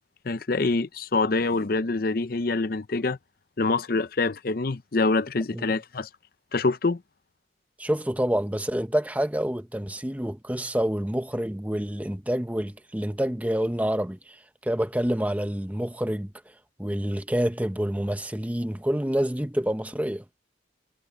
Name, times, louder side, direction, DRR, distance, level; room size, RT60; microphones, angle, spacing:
voice 1, 0.2-3.2 3.6-6.1 6.5-7.0, left 3 dB, 50° left, 0.6 m, -25 dB
voice 2, 7.8-16.3 16.8-20.2, equal, 10° right, 0.9 m, -27 dB
head